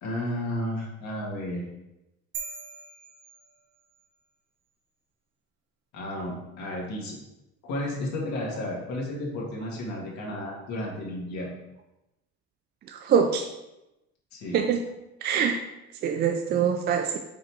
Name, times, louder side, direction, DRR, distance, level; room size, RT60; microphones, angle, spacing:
voice 1, 0.0-1.6 5.9-7.2 7.6-11.5 14.3-14.6, left 1 dB, 65° left, -2 dB, 1.8 m, -32 dB
sound 1, 2.3-4.1, right 5 dB, 85° right, 1.3 m, -41 dB
voice 2, 12.9-13.5 14.5-14.8 15.2-15.6 16.0-17.2, right 7 dB, 35° right, 4 dB, 0.4 m, -24 dB
5.2 x 3.9 x 4.6 m, 0.93 s
cardioid pair, 160°, 30 cm